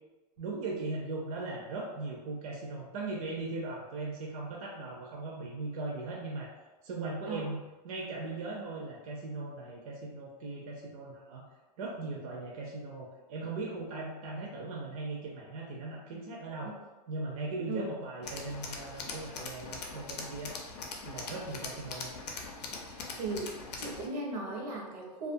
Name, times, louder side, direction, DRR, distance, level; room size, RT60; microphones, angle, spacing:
voice 1, 0.4-6.5 6.8-11.5 11.8-16.7 17.1-20.5 21.0-22.1, right 3 dB, 60° right, -2 dB, 0.5 m, -39 dB
Tools, 18.2-24.1, left 4 dB, 75° left, 0.5 m, -42 dB
voice 2, 23.1-25.3, right 2 dB, 85° right, -1 dB, 0.8 m, -37 dB
2.3 x 2.2 x 2.5 m, 1.2 s
supercardioid pair, 165°, 21 cm